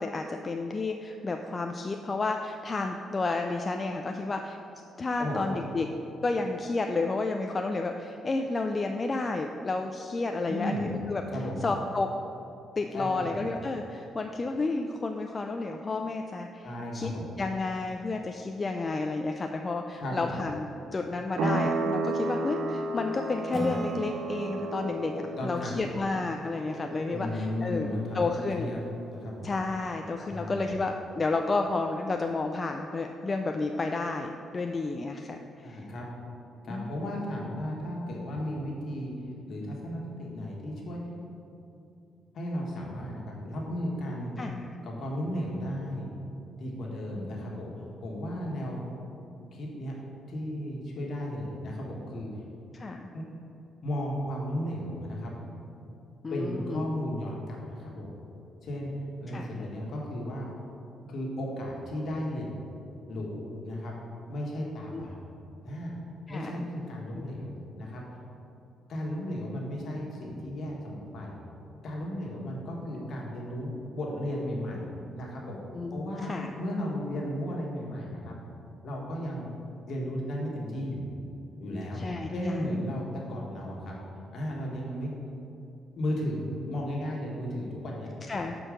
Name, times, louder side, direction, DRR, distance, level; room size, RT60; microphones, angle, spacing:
voice 1, 0.0-4.6 5.0-5.9 6.2-11.2 11.6-12.1 12.8-16.7 16.9-17.1 17.4-20.7 20.9-28.7 29.4-35.8 36.7-36.9 44.4-44.7 52.7-53.1 56.2-56.8 59.3-59.7 64.9-65.0 66.3-66.6 75.7-76.0 76.3-76.5 82.0-82.6 88.3-88.6, left 3 dB, 30° left, 4 dB, 0.3 m, -31 dB
voice 2, 5.2-5.6 10.5-11.0 11.3-11.7 12.9-13.4 16.6-17.3 20.0-20.4 25.4-25.7 27.1-28.8 29.1-29.5 30.3-30.6 35.6-36.0 36.6-41.0 42.3-44.4 44.8-46.1 46.6-48.8 49.5-50.0 50.3-52.3 53.1-53.2 53.8-55.3 56.3-58.1 58.6-58.9 59.2-60.5 61.1-62.6 63.1-63.9 64.3-65.2 65.6-65.9 66.3-68.3 68.9-71.4 71.8-74.8 75.1-75.6 75.9-76.3 76.6-78.4 78.8-79.5 79.9-81.1 81.6-83.9 84.3-85.1 85.9-88.1, equal, 60° left, -2 dB, 1.5 m, -34 dB
sound 1, 21.4-29.7, right 2 dB, 80° right, 0.6 m, -34 dB
Acoustic guitar / Strum, 23.5-27.0, equal, 25° right, 0.9 m, -39 dB
6.4 x 4.5 x 5.0 m, 2.9 s
cardioid pair, 90°, 0 cm